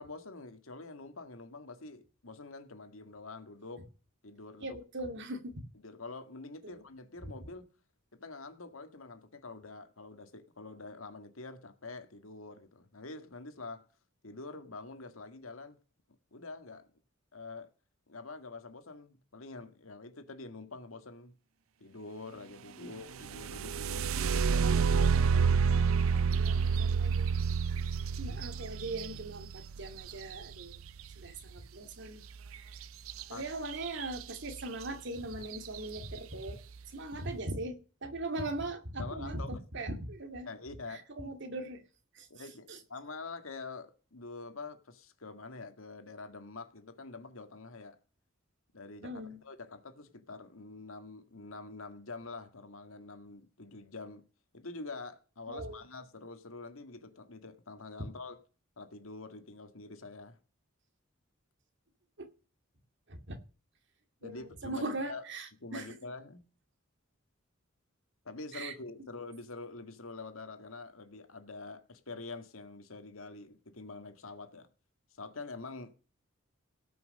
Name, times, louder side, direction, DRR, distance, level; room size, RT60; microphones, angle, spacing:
voice 1, 0.0-3.8 4.2-4.8 5.8-7.6 8.1-13.9 14.2-15.8 16.3-16.9 17.3-17.7 18.1-21.4 21.8-24.7 33.3-33.5 39.0-39.6 40.5-41.3 42.3-48.0 48.7-54.2 54.5-58.4 58.8-60.4 64.2-65.2 65.6-66.4 68.3-74.7 75.2-75.9, left 3 dB, 85° left, 1.9 m, -46 dB
voice 2, 4.6-5.6 6.6-6.8 26.3-27.3 28.2-30.8 31.2-32.2 32.6-32.7 33.3-36.6 36.9-40.5 40.9-41.8 42.1-42.3 42.7-42.8 49.0-49.4 55.5-55.8 62.2-62.3 63.1-63.4 64.2-65.9 68.5-68.7, right 2 dB, 60° right, 2.2 m, -40 dB
sound 1, 23.2-31.0 33.1-33.2 33.7-34.2 34.8-34.9 35.4-35.8, right 5 dB, 80° right, 0.5 m, -29 dB
17.5 x 6.0 x 6.5 m
head